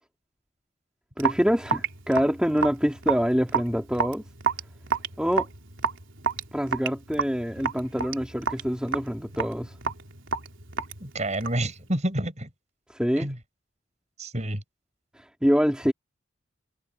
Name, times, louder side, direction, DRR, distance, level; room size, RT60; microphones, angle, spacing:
voice 1, 1.2-4.2 5.2-5.5 6.5-9.7 12.9-13.3 15.4-15.9, equal, 5° right, 2.7 m, -25 dB
Raindrop / Drip, 1.2-11.7, right 6 dB, 75° right, 3.5 m, -30 dB
voice 2, 11.0-12.5 13.2-13.4 14.2-14.6, right 1 dB, 35° right, 7.2 m, -29 dB
head